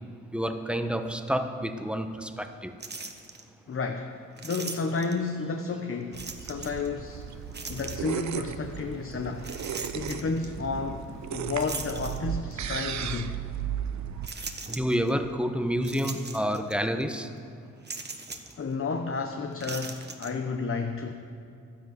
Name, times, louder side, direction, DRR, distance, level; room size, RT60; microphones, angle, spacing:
voice 1, 0.3-2.7 14.7-17.3, equal, 5° right, 7 dB, 1.1 m, -29 dB
sound 1, 2.8-3.4 4.4-5.3 6.1-6.9 7.5-8.3 9.4-10.5 11.6-12.6 13.2-13.3 14.2-15.1 15.8-16.8 17.0-17.1 17.8-18.6 19.5-20.3, right 4 dB, 35° right, 1.4 m, -39 dB
voice 2, 3.7-4.2 4.4-7.2 7.7-9.5 9.9-11.0 11.3-13.4 18.6-21.1, left 4 dB, 45° left, 5 dB, 1.0 m, -31 dB
sound 2, 6.1-14.3, right 9 dB, 65° right, 0.7 m, -35 dB
Thunder, 7.0-12.0, equal, 20° left, 2.2 m, -48 dB
11.5 x 10.5 x 8.0 m, 2.5 s
cardioid pair, 65°, 30 cm